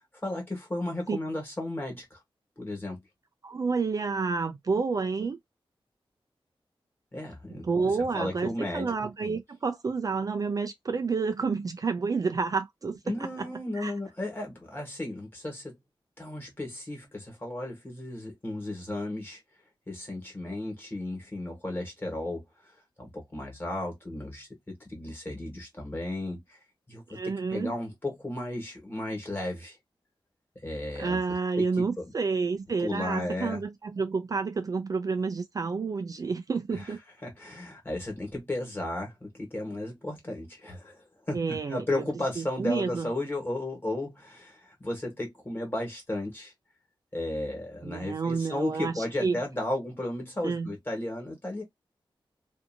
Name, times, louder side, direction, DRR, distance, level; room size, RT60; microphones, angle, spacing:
voice 1, 0.2-2.2 2.6-3.0 7.1-8.9 13.1-15.8 16.2-19.4 19.9-26.6 26.9-29.8 30.6-31.2 31.8-32.0 32.8-33.6 36.7-36.9 37.2-46.5 47.1-51.6, left 1 dB, 25° left, 1.4 m, -34 dB
voice 2, 3.4-5.4 7.5-13.0 13.8-13.9 27.1-27.7 31.0-37.0 41.3-42.0 42.4-43.1 47.8-49.4 50.4-50.7, right 4 dB, 40° right, 0.4 m, -29 dB
2.6 x 2.6 x 2.6 m
wide cardioid pair, 155°, 9 cm